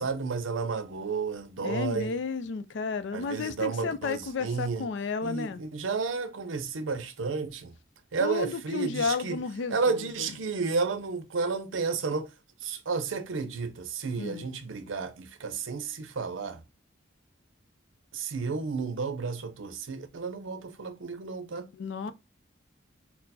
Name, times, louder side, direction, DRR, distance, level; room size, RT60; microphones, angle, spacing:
voice 1, 0.0-2.1 3.1-4.9 5.2-7.7 8.1-9.4 9.7-12.3 12.6-16.6 18.1-21.7, right 4 dB, 90° right, 0.6 m, -32 dB
voice 2, 1.6-5.6 8.2-10.4 14.2-14.5 21.7-22.1, left 4 dB, 70° left, 0.4 m, -32 dB
4.3 x 2.0 x 4.0 m
head